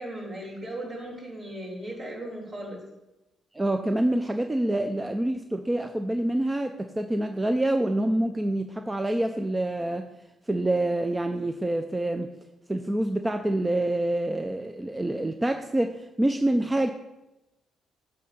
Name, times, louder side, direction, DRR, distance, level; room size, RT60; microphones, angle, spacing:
voice 1, 0.0-2.8, right 1 dB, 50° right, -3 dB, 3.3 m, -37 dB
voice 2, 3.5-10.1 10.5-12.3 12.7-16.9, right 1 dB, 15° right, 6 dB, 0.5 m, -26 dB
9.3 x 3.3 x 6.8 m, 0.96 s
cardioid pair, 90°, 0 cm